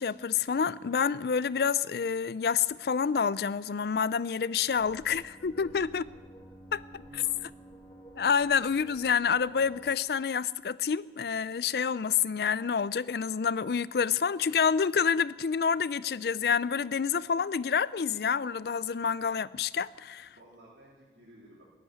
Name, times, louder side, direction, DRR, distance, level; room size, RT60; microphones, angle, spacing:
voice 1, 0.0-6.0 6.7-6.8 8.2-20.3, left 6 dB, 60° left, 0.4 m, -28 dB
sound 1, 4.7-10.0, right 1 dB, 20° left, 1.7 m, -51 dB
voice 2, 7.0-7.7 20.3-21.6, right 1 dB, 90° right, 3.5 m, -54 dB
16.5 x 8.5 x 9.4 m
head